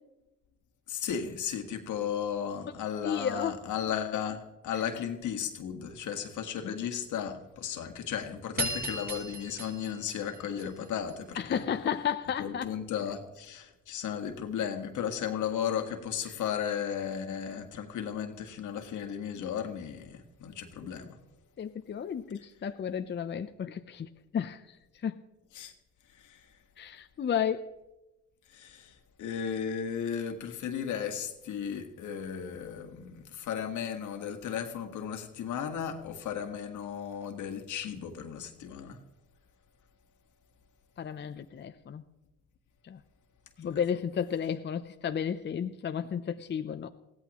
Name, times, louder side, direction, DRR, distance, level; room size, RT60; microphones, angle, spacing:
voice 1, 0.9-11.6 12.4-21.2 25.5-25.7 26.1-26.5 28.5-39.0 43.6-43.8, left 8 dB, 75° left, 5 dB, 1.7 m, -35 dB
voice 2, 3.0-3.6 11.4-12.7 21.6-24.6 25.0-25.2 26.8-27.7 41.0-42.0 42.8-43.0 43.6-46.9, left 8 dB, 35° left, 8 dB, 0.6 m, -33 dB
sound 1, 8.6-11.1, right 1 dB, 30° right, 7.0 m, -36 dB
20.5 x 16.0 x 3.0 m, 1.0 s
cardioid pair, 90°, 30 cm